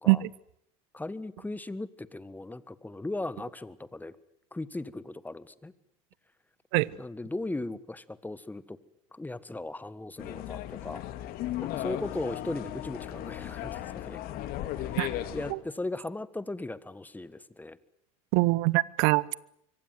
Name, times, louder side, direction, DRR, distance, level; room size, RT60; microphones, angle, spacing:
voice 1, 0.9-4.2 4.5-5.7 7.0-8.8 9.1-11.1 11.6-14.2 14.8-14.9 15.3-17.8, left 2 dB, 10° left, 1.6 m, -37 dB
sound 1, 10.2-15.5, left 12 dB, 55° left, 2.7 m, -36 dB
voice 2, 18.3-19.3, right 23 dB, 65° right, 1.0 m, -23 dB
26.0 x 24.5 x 7.9 m
hypercardioid pair, 80°, 18 cm